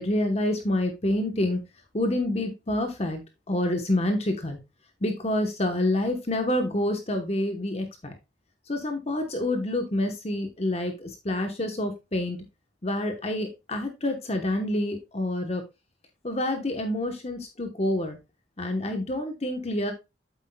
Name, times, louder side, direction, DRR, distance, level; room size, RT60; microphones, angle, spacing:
voice 1, 0.0-1.6 1.9-3.2 3.5-4.6 5.0-8.1 8.7-12.4 12.8-15.6 16.2-18.2 18.6-19.9, left 1 dB, 35° left, 5 dB, 1.0 m, -27 dB
8.1 x 8.0 x 2.2 m, 0.25 s
head